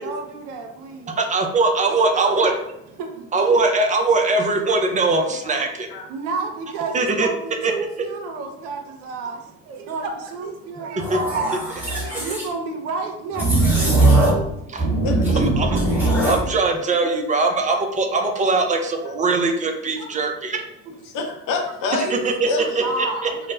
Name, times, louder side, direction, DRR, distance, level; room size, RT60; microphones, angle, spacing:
voice 1, 0.0-1.2 1.9-2.3 3.0-3.3 5.3-5.4 6.1-11.6 12.2-14.0 22.8-23.4, right 3 dB, 80° right, 4 dB, 0.6 m, -30 dB
voice 2, 1.1-2.5 3.3-5.9 6.9-7.3 7.6-7.7 11.1-11.2 14.7-14.9 15.3-15.8 16.3-20.6 22.1-22.5 22.8-23.3, right 3 dB, 20° right, 4 dB, 0.4 m, -21 dB
voice 3, 5.1-5.6 5.9-6.1 14.6-15.4 16.1-16.3 17.0-17.5 19.1-19.2 20.0-20.1 21.1-22.2 22.4-22.8, left 3 dB, 60° left, 4 dB, 0.7 m, -29 dB
sound 1, 11.0-12.5 13.3-14.5 14.8-16.5, right 2 dB, 5° right, 1.2 m, -19 dB
2.4 x 2.0 x 3.1 m, 0.79 s
hypercardioid pair, 75°, 37 cm